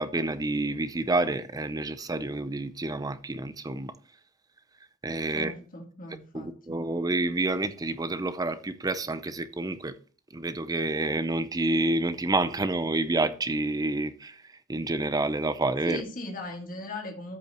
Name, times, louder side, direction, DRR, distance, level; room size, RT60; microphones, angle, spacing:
voice 1, 0.0-3.9 5.0-5.5 6.3-9.9 10.3-14.4 14.7-16.0, right 2 dB, 20° right, 0.6 m, -28 dB
voice 2, 5.3-6.8 15.8-17.4, left 2 dB, 40° left, 1.8 m, -38 dB
13.5 x 5.6 x 3.0 m
head